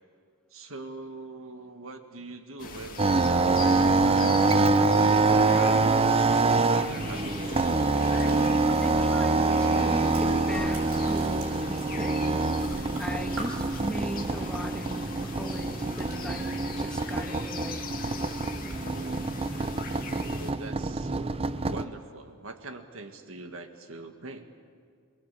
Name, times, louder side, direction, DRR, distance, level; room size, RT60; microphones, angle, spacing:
voice 1, 0.5-7.6 13.5-13.7 20.4-21.2 21.6-24.4, right 2 dB, 70° right, 6 dB, 1.8 m, -42 dB
sound 1, 2.6-20.5, left 4 dB, 45° left, 2.2 m, -41 dB
sound 2, 3.0-21.8, right 3 dB, 30° right, 0.7 m, -25 dB
sound 3, 8.0-9.4 9.7-12.3 12.5-14.3 15.3-17.4 17.8-17.9 18.2-20.8, right 1 dB, 90° right, 7.8 m, -47 dB
voice 2, 8.2-12.2 12.7-17.9, equal, 5° left, 3 dB, 1.6 m, -38 dB
27.0 x 20.0 x 8.5 m, 2.1 s
head